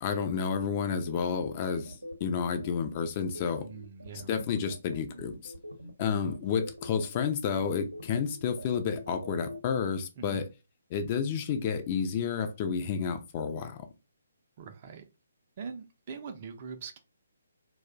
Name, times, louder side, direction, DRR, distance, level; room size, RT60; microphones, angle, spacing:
voice 1, 0.0-3.7 4.3-5.5 6.0-10.5 10.9-13.8, left 6 dB, 30° left, 0.4 m, -30 dB
sound 1, 0.9-9.6, left 1 dB, 80° right, 0.6 m, -44 dB
voice 2, 3.5-4.3 10.2-10.4 14.6-15.0 15.6-17.0, right 6 dB, 35° right, 0.4 m, -42 dB
2.4 x 2.0 x 3.5 m
figure-of-eight pair, 135°, 0 cm